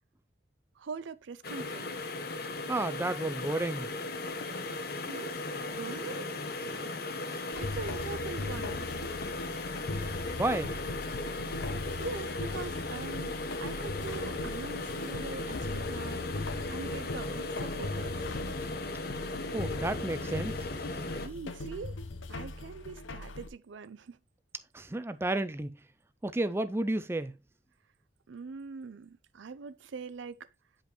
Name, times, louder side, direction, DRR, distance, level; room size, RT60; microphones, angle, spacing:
voice 1, 0.8-1.9 4.5-5.4 5.7-6.9 7.3-8.9 12.0-13.3 13.6-18.5 21.1-22.0 22.3-24.2 28.3-30.5, right 5 dB, 80° right, 0.5 m, -43 dB
sound 1, 1.4-21.3, left 2 dB, 55° left, 0.9 m, -37 dB
voice 2, 2.7-3.9 10.4-10.8 19.5-20.7 24.7-25.8 26.2-27.3, right 2 dB, 15° right, 0.4 m, -31 dB
sound 2, 7.5-23.5, left 2 dB, 90° left, 0.8 m, -40 dB
8.8 x 5.2 x 3.0 m
head